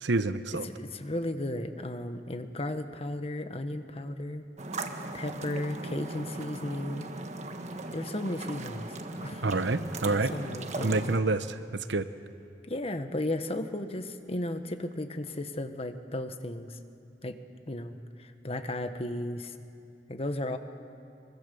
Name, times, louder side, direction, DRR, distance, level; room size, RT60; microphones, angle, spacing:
voice 1, 0.0-0.7 9.4-10.3 10.8-11.5 11.9-12.1, right 3 dB, 80° right, 12 dB, 0.9 m, -27 dB
voice 2, 0.6-4.4 5.1-7.1 7.9-8.9 9.2-9.4 10.3-11.2 12.6-16.8 17.2-17.4 17.7-19.6 20.1-20.6, left 1 dB, 35° left, 8 dB, 1.3 m, -34 dB
sound 1, 4.6-11.2, right 2 dB, 40° right, 1.4 m, -38 dB
24.5 x 23.5 x 7.0 m, 2.5 s
head